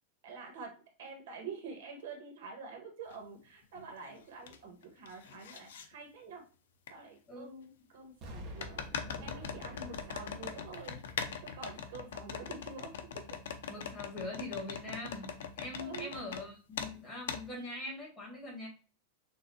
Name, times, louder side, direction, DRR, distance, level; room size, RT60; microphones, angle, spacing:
voice 1, 0.2-6.4 6.9-11.0 11.4-13.3 15.8-16.1, right 5 dB, 65° right, 3 dB, 1.3 m, -47 dB
sound 1, 3.1-3.2 3.8-4.6 4.8-5.9 6.9-7.0 8.6-16.4 16.8-16.9 17.3-17.4, left 7 dB, 80° left, 0.6 m, -41 dB
Explosion, 8.2-12.1 12.6-12.7, right 1 dB, 25° right, 0.8 m, -50 dB
voice 2, 13.7-18.7, left 2 dB, 10° left, -4 dB, 1.9 m, -43 dB
6.4 x 2.6 x 2.7 m, 0.35 s
supercardioid pair, 175°, 0 cm